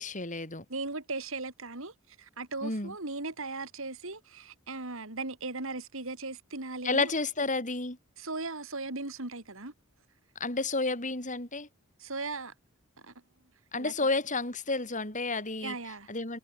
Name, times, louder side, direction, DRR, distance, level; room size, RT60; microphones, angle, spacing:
voice 1, 0.0-0.6 2.6-2.9 6.8-8.0 10.4-11.7 13.7-15.7 16.1-16.4, left 3 dB, 35° left, 6.9 m, -31 dB
voice 2, 0.7-7.1 8.2-9.7 12.0-12.5 13.0-13.1 13.7-13.9 15.6-16.1, right 3 dB, 65° right, 3.4 m, -38 dB
head